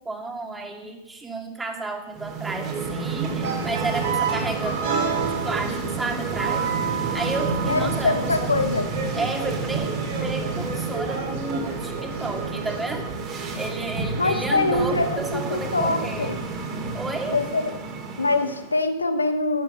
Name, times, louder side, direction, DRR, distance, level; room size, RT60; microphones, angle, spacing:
voice 1, 0.0-8.5 9.1-16.3 16.9-17.4, right 2 dB, 10° right, 3 dB, 2.5 m, -32 dB
sound 1, 2.1-18.7, right 4 dB, 35° right, 3.3 m, -30 dB
sound 2, 3.4-12.9, right 5 dB, 65° right, 4.4 m, -30 dB
voice 2, 7.7-8.9 14.2-16.4 17.3-17.7 18.2-19.6, left 3 dB, 85° left, 8 dB, 1.4 m, -24 dB
14.0 x 10.0 x 6.8 m, 0.96 s
figure-of-eight pair, 100°, 0 cm